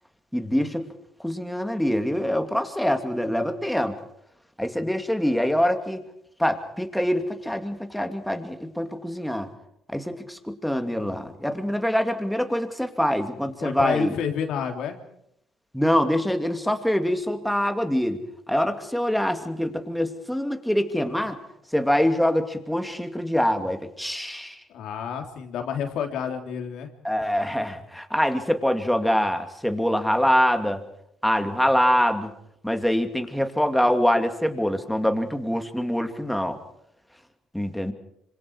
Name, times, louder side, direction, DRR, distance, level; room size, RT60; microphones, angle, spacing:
voice 1, 0.3-0.8 1.2-4.0 4.6-6.0 6.4-9.5 9.9-14.1 15.7-18.2 18.5-21.4 21.7-24.6 27.0-30.8 31.2-32.3 32.6-36.6 37.5-37.9, equal, ahead, 6 dB, 2.6 m, -24 dB
voice 2, 13.6-15.0 24.7-26.9, left 7 dB, 75° left, 4 dB, 3.5 m, -29 dB
27.0 x 26.0 x 4.8 m, 0.76 s
cardioid pair, 95°, 0 cm